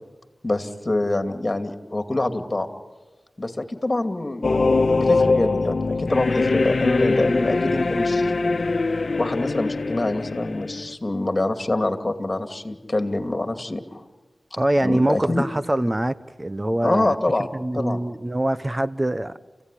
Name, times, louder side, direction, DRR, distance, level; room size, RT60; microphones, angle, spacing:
voice 1, 0.4-2.7 3.4-4.5 4.9-8.3 9.2-14.0 14.8-15.5 16.8-17.5 17.7-18.0, left 2 dB, 35° left, 2.4 m, -25 dB
sound 1, 4.4-10.9, left 3 dB, 65° left, 1.1 m, -22 dB
voice 2, 14.6-17.2 17.5-19.3, right 1 dB, 25° right, 0.8 m, -24 dB
29.0 x 16.0 x 10.0 m
cardioid pair, 45°, 0 cm